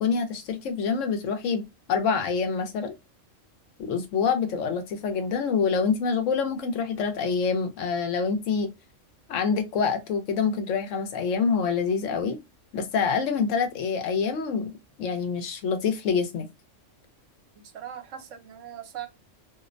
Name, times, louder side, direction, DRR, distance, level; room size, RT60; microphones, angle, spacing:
voice 1, 0.0-1.6 1.9-3.0 3.8-8.7 9.3-12.4 12.7-14.7 15.0-16.5, left 5 dB, 75° left, 1.0 m, -26 dB
voice 2, 17.5-19.1, right 10 dB, 75° right, 1.0 m, -40 dB
2.6 x 2.1 x 2.4 m
omnidirectional pair, 1.3 m